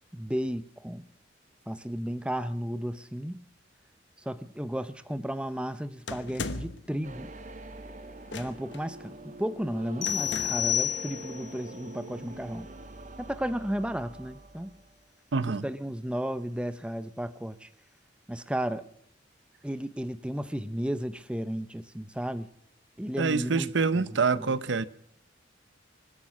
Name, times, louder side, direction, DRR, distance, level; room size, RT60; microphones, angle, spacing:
voice 1, 0.1-1.1 1.7-3.5 4.2-7.3 8.3-12.7 13.2-14.8 15.5-17.7 18.3-18.9 19.6-22.5 23.0-24.1 24.3-24.5, equal, 5° right, 0.6 m, -34 dB
sound 1, 6.1-6.9 8.3-8.8 10.1-10.8, left 3 dB, 70° left, 1.2 m, -37 dB
sound 2, 7.0-14.9, right 2 dB, 40° right, 1.1 m, -44 dB
sound 3, 10.0-11.5, left 10 dB, 40° left, 2.4 m, -29 dB
voice 2, 15.3-15.6 23.2-24.8, right 4 dB, 70° right, 0.7 m, -26 dB
25.5 x 8.5 x 6.0 m
head